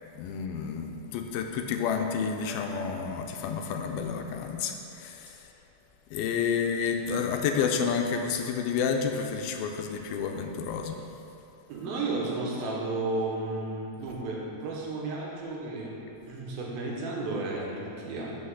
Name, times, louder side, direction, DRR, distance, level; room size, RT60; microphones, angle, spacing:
voice 1, 0.2-5.5 6.1-11.0, left 6 dB, 85° left, 4 dB, 2.5 m, -30 dB
voice 2, 11.7-16.0 16.3-18.4, right 2 dB, 80° right, -3 dB, 2.7 m, -33 dB
6.1 x 5.6 x 6.5 m, 2.7 s
omnidirectional pair, 4.2 m